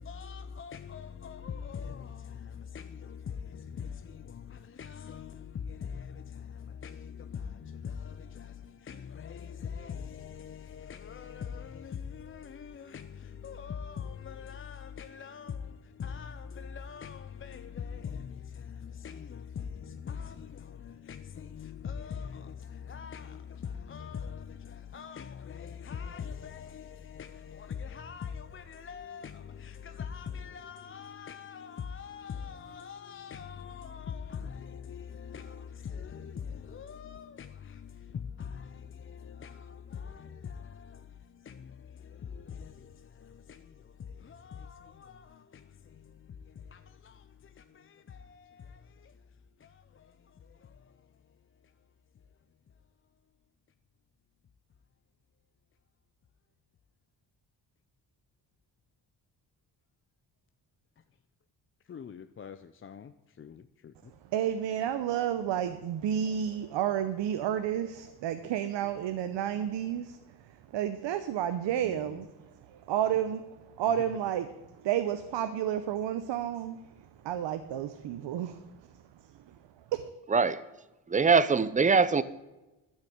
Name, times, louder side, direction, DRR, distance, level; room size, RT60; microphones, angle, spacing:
voice 1, 0.0-49.2 49.6-51.1 61.9-64.1 67.8-67.9 69.3-69.4 71.8-72.2 74.0-74.1, left 7 dB, 30° left, 0.4 m, -43 dB
voice 2, 64.3-70.2 70.4-72.3 72.7-76.8 77.2-78.7 79.5-79.6 79.9-80.1, right 10 dB, 90° right, 0.8 m, -31 dB
voice 3, 80.3-80.7 81.1-82.2, right 5 dB, 20° right, 0.5 m, -23 dB
12.0 x 6.5 x 8.6 m
cardioid pair, 120°, 42 cm